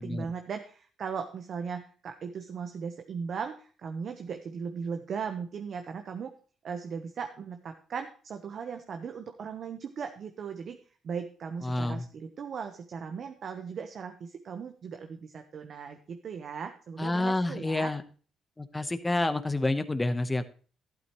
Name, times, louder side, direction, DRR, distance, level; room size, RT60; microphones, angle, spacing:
voice 1, 0.0-6.3 6.6-10.8 11.0-17.9, right 6 dB, 55° right, 6 dB, 1.0 m, -38 dB
voice 2, 11.6-12.1 17.0-18.0 18.6-20.5, left 2 dB, 15° left, 10 dB, 1.1 m, -29 dB
12.0 x 11.5 x 3.1 m, 0.40 s
cardioid pair, 90°, 0 cm